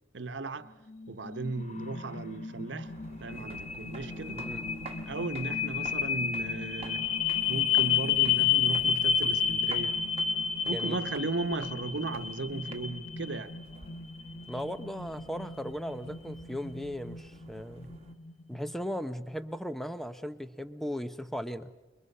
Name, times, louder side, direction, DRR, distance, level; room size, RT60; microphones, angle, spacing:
voice 1, 0.1-0.7 1.1-2.9 3.2-4.4 5.1-7.0 7.5-9.9 10.6-13.5, right 3 dB, 85° right, 1.0 m, -36 dB
sound 1, 0.9-18.9, left 7 dB, 40° left, 1.0 m, -31 dB
sound 2, 2.9-18.1, right 2 dB, 35° right, 1.8 m, -49 dB
voice 2, 4.4-4.7 10.7-11.0 14.5-17.9 18.5-21.7, equal, ahead, 0.8 m, -37 dB
29.5 x 22.0 x 5.5 m
head